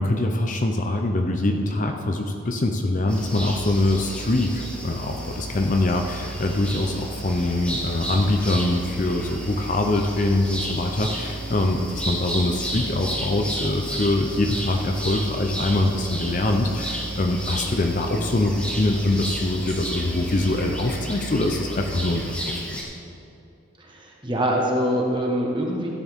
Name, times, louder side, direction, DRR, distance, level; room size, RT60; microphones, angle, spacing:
voice 1, 0.0-22.4 22.7-22.8, left 2 dB, 35° left, 4 dB, 0.6 m, -23 dB
sound 1, 3.1-22.8, equal, 5° left, 1.4 m, -34 dB
sound 2, 3.1-22.1, right 2 dB, 60° right, 1.4 m, -37 dB
voice 2, 23.8-25.9, equal, 20° right, -1 dB, 1.4 m, -24 dB
14.0 x 9.7 x 3.6 m, 2.7 s
head